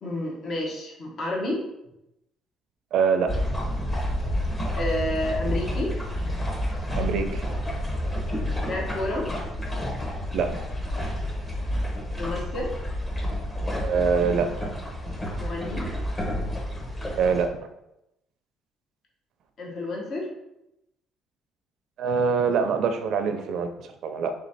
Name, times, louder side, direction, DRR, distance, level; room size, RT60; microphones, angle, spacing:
voice 1, 0.0-1.6 4.8-5.9 8.6-9.3 12.2-12.7 15.4-15.9 19.6-20.3, left 1 dB, 55° left, -2 dB, 1.2 m, -30 dB
voice 2, 2.9-3.4 7.0-7.4 10.3-10.6 13.8-14.7 17.2-17.6 22.0-24.3, right 5 dB, 65° right, 8 dB, 0.5 m, -24 dB
sound 1, 3.3-17.5, equal, 20° left, 1.0 m, -29 dB
3.7 x 3.0 x 4.1 m, 0.86 s
cardioid pair, 105°, 0 cm